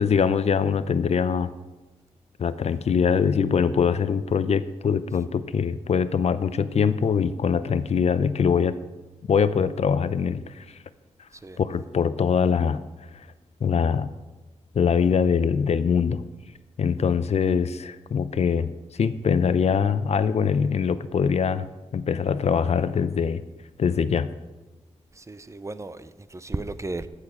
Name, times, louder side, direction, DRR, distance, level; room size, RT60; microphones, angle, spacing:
voice 1, 0.0-1.5 2.4-8.8 9.3-10.6 11.6-12.8 13.6-14.1 14.7-16.2 16.8-18.7 19.0-21.7 21.9-23.4 23.8-24.3, left 6 dB, 60° left, 0.5 m, -23 dB
voice 2, 25.2-27.1, right 2 dB, 25° right, 0.6 m, -34 dB
14.0 x 6.6 x 5.0 m
cardioid pair, 65°, 12 cm